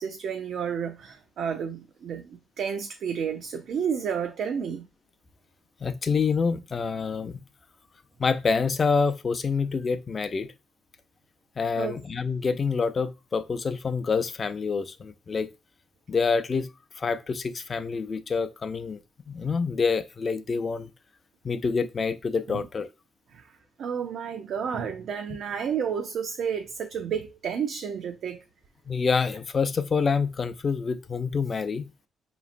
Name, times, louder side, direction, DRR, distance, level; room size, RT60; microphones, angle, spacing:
voice 1, 0.0-4.9 11.8-12.0 22.5-22.6 23.3-23.5 23.8-28.4, right 7 dB, 65° right, 0.5 m, -31 dB
voice 2, 5.8-7.4 8.2-10.5 11.6-15.5 16.1-16.7 17.0-19.0 19.3-20.9 21.4-22.9 28.9-31.9, left 5 dB, 40° left, 0.5 m, -27 dB
4.9 x 3.0 x 2.5 m
cardioid pair, 90°, 0 cm